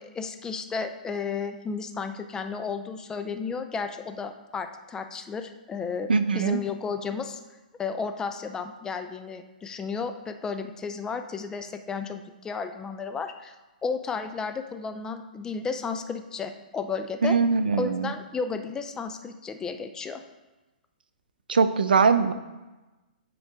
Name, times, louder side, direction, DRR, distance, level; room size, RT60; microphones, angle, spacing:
voice 1, 0.0-7.4 7.8-13.5 13.8-17.4 17.8-20.2, left 5 dB, 15° left, 7 dB, 0.5 m, -33 dB
voice 2, 6.1-6.6 17.2-18.1 21.5-22.3, right 5 dB, 85° right, 12 dB, 0.5 m, -21 dB
9.4 x 3.9 x 3.6 m, 1.1 s
hypercardioid pair, 130°, 5 cm